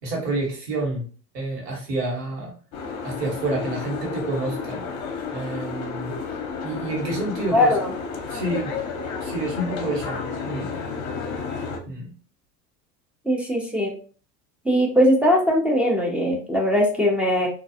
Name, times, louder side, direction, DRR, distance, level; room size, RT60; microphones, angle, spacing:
voice 1, 0.0-1.0 1.3-2.5 3.0-4.8 5.3-6.1 6.6-7.7 8.3-8.7 9.2-10.7 11.9-12.1, right 2 dB, 75° right, -1 dB, 1.3 m, -28 dB
Boat Water vehicle, 2.7-11.8, left 5 dB, 35° left, 0.7 m, -31 dB
voice 2, 7.5-7.9 13.3-13.9 14.7-17.5, equal, 5° right, -2 dB, 0.3 m, -20 dB
2.4 x 2.3 x 2.7 m, 0.40 s
hypercardioid pair, 85°, 48 cm